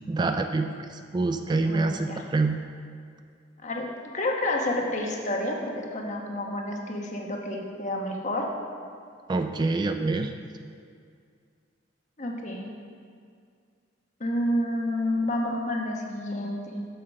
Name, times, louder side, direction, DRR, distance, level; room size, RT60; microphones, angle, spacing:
voice 1, 0.1-2.6 9.3-10.3, right 3 dB, 25° right, 7 dB, 0.3 m, -26 dB
voice 2, 1.6-2.3 3.6-3.9 4.1-8.4 12.2-12.6 14.2-16.8, left 1 dB, 40° left, 0 dB, 1.1 m, -29 dB
8.1 x 5.7 x 6.5 m, 2.2 s
head